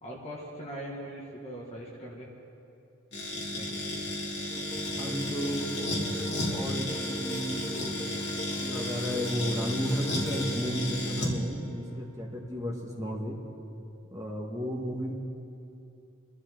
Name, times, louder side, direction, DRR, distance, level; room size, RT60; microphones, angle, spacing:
voice 1, 0.0-2.3 3.5-4.1, equal, 30° left, -3 dB, 2.0 m, -41 dB
sound 1, 3.1-11.4, left 1 dB, 50° left, 2.6 m, -33 dB
sound 2, 4.5-12.8 13.3-13.5, equal, 10° left, 1.1 m, -43 dB
voice 2, 5.0-5.7 6.5-8.0 8.6-13.4 14.1-15.1, equal, 15° right, -2 dB, 1.6 m, -33 dB
26.0 x 12.5 x 3.9 m, 2.7 s
head